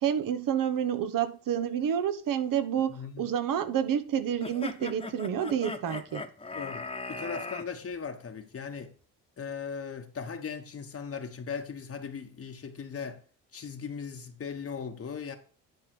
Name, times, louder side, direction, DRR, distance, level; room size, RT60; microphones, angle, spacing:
voice 1, 0.0-6.2, right 9 dB, 60° right, 1.2 m, -29 dB
voice 2, 2.9-3.3 6.5-8.9 9.4-13.2 13.5-15.3, left 6 dB, 40° left, 1.2 m, -38 dB
sound 1, 4.4-7.7, left 3 dB, 15° left, 1.2 m, -38 dB
10.5 x 3.7 x 6.1 m
supercardioid pair, 60°, 38 cm